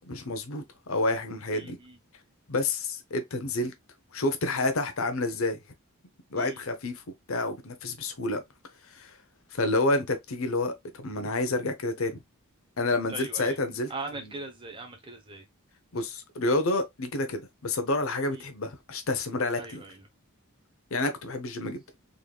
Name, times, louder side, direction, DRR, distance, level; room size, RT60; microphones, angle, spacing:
voice 1, 0.1-1.8 2.5-3.7 4.1-5.6 6.3-7.0 7.3-8.4 8.9-9.2 9.5-12.2 12.8-14.3 15.9-19.8 20.9-21.8, left 2 dB, 70° left, 0.8 m, -29 dB
voice 2, 1.5-2.0 6.4-6.6 13.1-13.6 13.9-15.5 18.3-18.5 19.6-20.0, right 3 dB, 25° right, 0.9 m, -40 dB
3.8 x 3.2 x 2.3 m
head